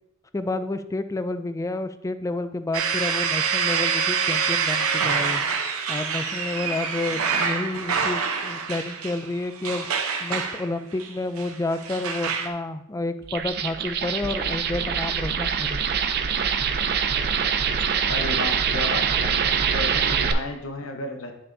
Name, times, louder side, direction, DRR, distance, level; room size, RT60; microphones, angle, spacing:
voice 1, 0.3-5.4 5.9-9.9 10.2-15.8, left 2 dB, 15° left, 11 dB, 0.3 m, -30 dB
sound 1, 2.7-12.5, right 6 dB, 80° right, 0.8 m, -26 dB
sound 2, 13.2-20.3, right 7 dB, 50° right, 0.5 m, -24 dB
voice 2, 18.0-19.4 19.7-21.3, left 2 dB, 70° left, 5 dB, 1.0 m, -32 dB
9.6 x 5.5 x 2.6 m, 0.84 s
head